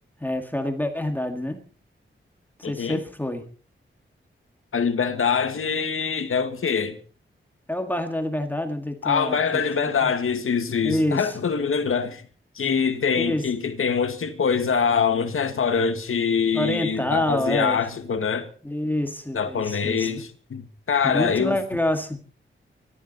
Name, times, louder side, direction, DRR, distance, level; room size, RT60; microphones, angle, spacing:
voice 1, 0.2-1.6 2.6-3.5 7.7-10.1 10.8-11.3 13.2-13.5 16.5-17.8 18.6-20.1 21.0-22.2, left 1 dB, 10° left, 1.9 m, -27 dB
voice 2, 2.6-3.0 4.7-7.0 9.0-12.2 12.6-18.5 19.3-21.6, left 6 dB, 85° left, 1.9 m, -24 dB
24.0 x 13.0 x 4.2 m
wide cardioid pair, 130°, 21 cm